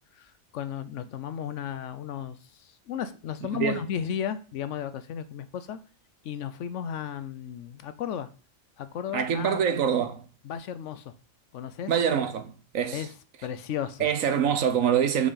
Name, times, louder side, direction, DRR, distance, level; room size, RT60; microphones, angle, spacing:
voice 1, 0.2-5.8 6.2-8.3 8.8-9.6 10.4-11.1 11.5-11.9 12.9-13.1 13.4-14.1, left 9 dB, 70° left, 0.9 m, -34 dB
voice 2, 3.5-3.8 9.1-10.3 11.9-13.1 14.0-15.3, right 8 dB, 90° right, 1.3 m, -25 dB
6.3 x 5.4 x 3.9 m
omnidirectional pair, 1.4 m